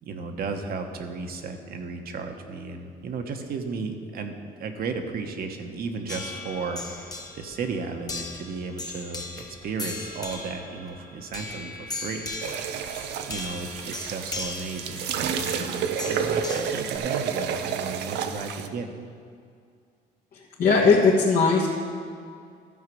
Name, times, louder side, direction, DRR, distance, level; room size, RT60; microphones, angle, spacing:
voice 1, 0.0-12.3 13.3-18.9, right 4 dB, 60° right, 5 dB, 1.1 m, -34 dB
sound 1, 6.1-17.0, left 2 dB, 20° left, 1.3 m, -38 dB
sound 2, 12.4-18.7, right 7 dB, 85° right, 0.7 m, -30 dB
voice 2, 20.3-21.7, left 4 dB, 65° left, -5 dB, 1.6 m, -19 dB
13.0 x 4.9 x 7.6 m, 2.3 s
cardioid pair, 110°, 17 cm